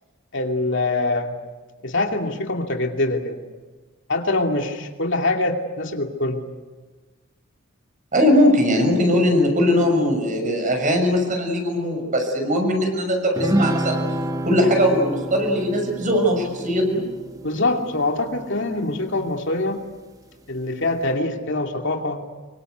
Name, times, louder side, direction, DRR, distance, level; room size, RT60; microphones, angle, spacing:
voice 1, 0.3-1.3 1.8-3.4 4.1-6.4 17.4-19.8 20.5-22.2, left 2 dB, 60° left, 3 dB, 2.6 m, -24 dB
voice 2, 8.1-14.0 14.4-17.0, equal, 40° right, 4 dB, 6.4 m, -20 dB
sound 1, 13.4-19.0, right 1 dB, 15° right, 1.2 m, -28 dB
26.0 x 24.5 x 8.1 m, 1.3 s
head